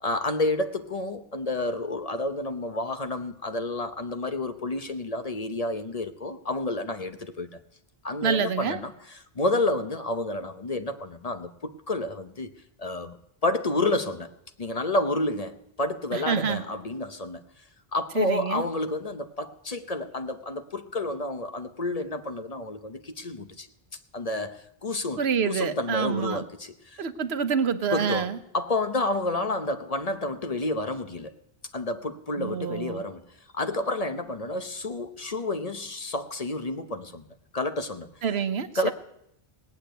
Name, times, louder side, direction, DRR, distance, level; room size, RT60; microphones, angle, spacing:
voice 1, 0.0-7.6 8.0-12.5 12.8-13.2 13.4-14.3 14.6-17.4 17.9-23.7 24.1-27.0 27.9-31.3 31.7-33.2 33.5-37.3 37.5-38.1 38.7-38.9, left 2 dB, 40° left, 0.9 m, -30 dB
voice 2, 8.2-8.8 16.1-16.6 18.1-18.6 25.2-26.4 27.0-28.4 32.4-33.0 38.2-38.9, right 6 dB, 80° right, 1.1 m, -27 dB
18.0 x 8.6 x 9.1 m
omnidirectional pair, 1.0 m